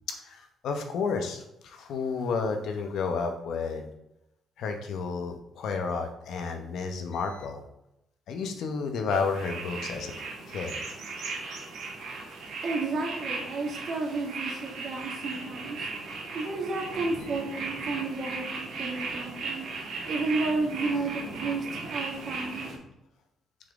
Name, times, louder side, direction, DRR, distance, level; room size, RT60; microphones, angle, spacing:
voice 1, 0.1-3.9 4.6-7.6 8.3-10.1 10.5-10.8 12.3-12.4, left 5 dB, 75° left, 5 dB, 0.9 m, -31 dB
sound 1, 9.1-22.8, right 3 dB, 75° right, 1.8 m, -37 dB
voice 2, 12.6-15.9 16.3-19.7 20.1-22.9, right 3 dB, 60° right, 0 dB, 1.7 m, -32 dB
6.3 x 4.0 x 3.7 m, 0.84 s
cardioid pair, 90°, 0 cm